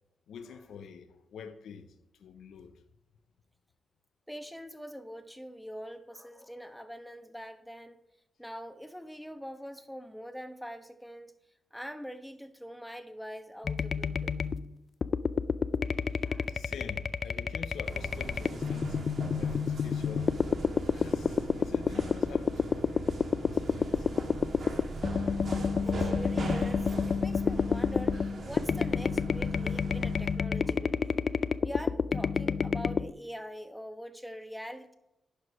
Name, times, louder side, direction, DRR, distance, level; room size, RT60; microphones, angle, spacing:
voice 1, 0.3-2.8 16.1-19.1 19.4-20.3 20.9-23.0 23.3-24.1, left 6 dB, 85° left, 0.7 m, -46 dB
voice 2, 4.3-8.0 8.4-11.3 11.7-14.4 16.2-16.6 25.2-25.5 25.8-31.2 31.6-35.0, equal, ahead, 1.1 m, -44 dB
sound 1, 13.7-14.7 15.0-33.1, left 6 dB, 55° left, 0.4 m, -29 dB
sound 2, 17.8-30.4, right 3 dB, 65° right, 1.9 m, -40 dB
11.0 x 4.8 x 4.9 m
cardioid pair, 60°, 0 cm